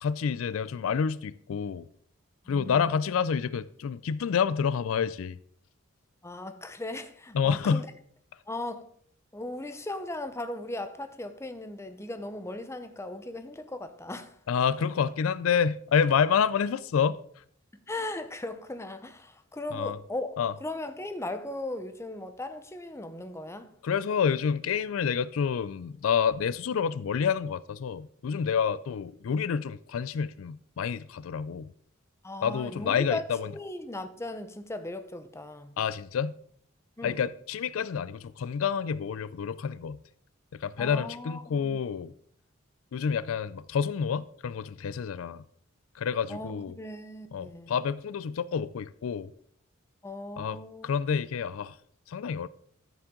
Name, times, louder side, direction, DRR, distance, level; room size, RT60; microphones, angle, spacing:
voice 1, 0.0-1.9 2.5-5.4 7.3-7.8 14.5-17.2 19.7-20.0 20.4-20.5 23.8-31.7 32.4-33.5 35.8-36.3 37.0-40.0 40.5-42.1 42.9-45.4 46.0-46.7 47.3-49.3 50.4-51.8 52.1-52.5, left 7 dB, 85° left, 0.4 m, -28 dB
voice 2, 2.5-3.0 6.2-7.9 8.5-8.8 9.3-14.4 14.8-14.9 17.7-20.3 20.6-23.7 32.2-33.2 33.5-35.8 37.0-37.2 40.8-41.8 46.3-47.7 50.0-50.9, left 2 dB, 15° left, 0.7 m, -38 dB
12.5 x 7.2 x 3.7 m
head